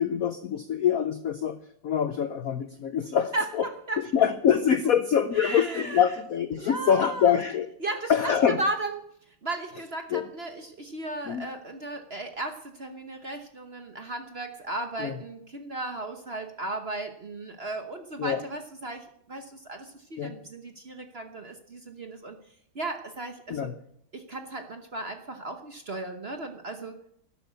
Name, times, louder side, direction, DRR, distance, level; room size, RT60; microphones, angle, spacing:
voice 1, 0.0-3.6 4.1-7.7 8.1-8.6 10.1-10.2 11.3-11.5 15.0-15.1 18.2-18.4 20.2-20.3 23.5-23.7, left 8 dB, 70° left, 11 dB, 0.8 m, -25 dB
voice 2, 3.3-4.1 5.3-6.0 6.5-7.4 7.8-22.4 22.7-23.7 24.1-27.0, right 2 dB, 40° right, 6 dB, 1.0 m, -35 dB
12.5 x 12.0 x 8.2 m, 0.71 s
omnidirectional pair, 2.3 m